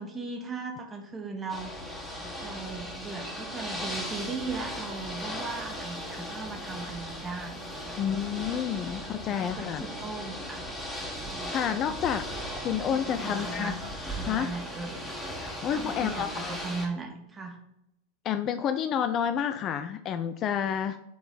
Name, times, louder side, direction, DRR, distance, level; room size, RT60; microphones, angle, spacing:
voice 1, 0.0-1.7 2.2-8.0 9.3-9.7 10.0-11.6 12.8-13.8 14.0-15.0 15.7-17.6, right 4 dB, 20° right, 2 dB, 1.5 m, -38 dB
Ocean / Boat Water vehicle, 1.5-16.9, equal, 10° left, 1.8 m, -37 dB
voice 2, 8.0-9.8 11.5-12.2 12.6-13.8 14.2-14.5 15.4-16.6 18.2-21.0, left 8 dB, 30° left, 9 dB, 0.4 m, -29 dB
8.4 x 3.9 x 4.0 m, 0.86 s
figure-of-eight pair, 90°, 0 cm